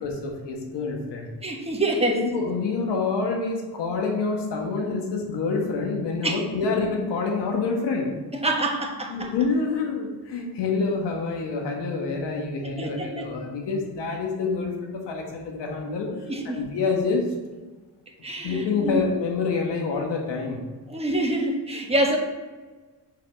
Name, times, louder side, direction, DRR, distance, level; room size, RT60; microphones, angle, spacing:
voice 1, 0.0-1.3 2.1-8.2 9.1-16.1 16.4-17.2 18.4-20.6, left 4 dB, 80° left, 1 dB, 1.5 m, -27 dB
voice 2, 1.4-2.2 6.2-6.4 8.3-9.3 12.8-13.3 16.3-16.6 18.2-19.0 20.9-22.2, right 1 dB, 15° right, 0 dB, 1.4 m, -26 dB
5.6 x 4.2 x 6.1 m, 1.3 s
cardioid pair, 80°, 42 cm